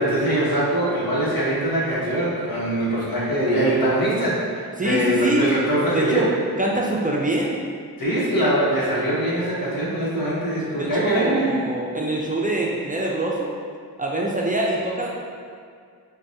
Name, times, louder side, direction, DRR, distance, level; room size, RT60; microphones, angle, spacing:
voice 1, 0.0-6.3 8.0-11.5, right 1 dB, 65° left, -7 dB, 1.2 m, -22 dB
voice 2, 4.8-5.4 5.9-6.3 6.6-7.6 10.8-13.5 14.0-15.1, right 2 dB, 20° right, -3 dB, 0.4 m, -24 dB
4.5 x 2.3 x 2.7 m, 2.2 s
cardioid pair, 45°, 38 cm